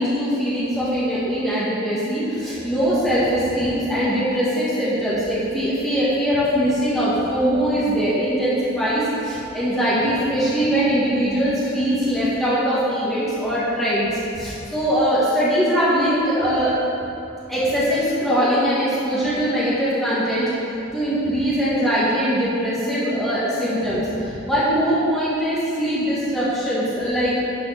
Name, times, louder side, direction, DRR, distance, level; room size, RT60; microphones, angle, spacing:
voice 1, 0.0-14.1 14.3-16.7 17.5-20.5 20.9-27.4, equal, ahead, -11 dB, 1.9 m, -21 dB
11.0 x 5.0 x 6.6 m, 2.8 s
head